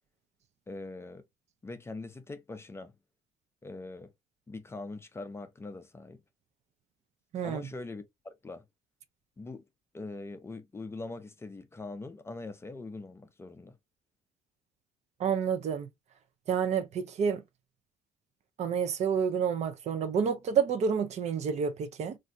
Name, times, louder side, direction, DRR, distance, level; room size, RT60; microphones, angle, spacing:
voice 1, 0.7-1.2 1.6-2.9 3.6-4.1 4.5-6.2 7.4-8.6 9.4-9.6 9.9-13.8, left 3 dB, 15° left, 0.5 m, -42 dB
voice 2, 7.3-7.7 15.2-15.9 16.5-17.4 18.6-22.2, right 7 dB, 50° right, 0.5 m, -29 dB
3.1 x 2.6 x 2.5 m
cardioid pair, 115°, 14 cm